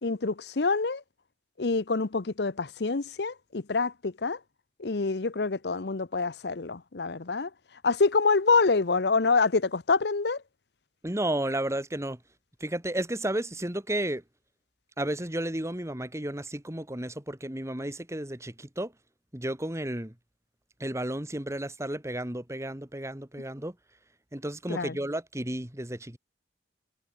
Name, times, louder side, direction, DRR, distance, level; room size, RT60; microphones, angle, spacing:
voice 1, 0.0-1.0 1.6-4.4 4.8-7.5 7.8-10.4 24.7-25.0, left 4 dB, 65° left, 0.8 m, -26 dB
voice 2, 11.0-12.2 12.6-14.2 15.0-18.9 19.3-20.1 20.8-23.8 24.3-26.2, right 1 dB, 15° right, 2.0 m, -32 dB
head